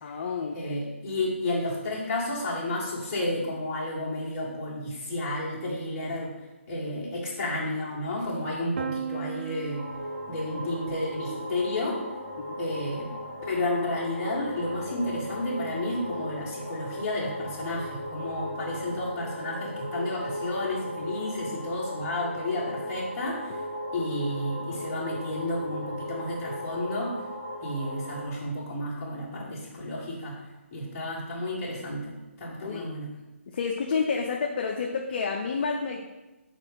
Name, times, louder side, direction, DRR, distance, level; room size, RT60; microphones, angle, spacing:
voice 1, 0.0-0.9 12.4-12.6 29.4-29.7 32.6-32.9 33.5-36.1, left 5 dB, 40° left, 1 dB, 0.5 m, -30 dB
voice 2, 0.5-6.3 6.7-9.8 10.3-12.0 12.6-13.1 13.5-23.5 23.9-27.1 27.6-30.4 30.7-33.1, left 1 dB, 25° left, -6 dB, 1.7 m, -31 dB
Piano, 8.8-14.5, right 7 dB, 55° right, 0.3 m, -41 dB
sound 1, 9.7-28.2, left 1 dB, 5° left, 1.2 m, -37 dB
4.5 x 4.1 x 5.1 m, 1.1 s
figure-of-eight pair, 150°, 7 cm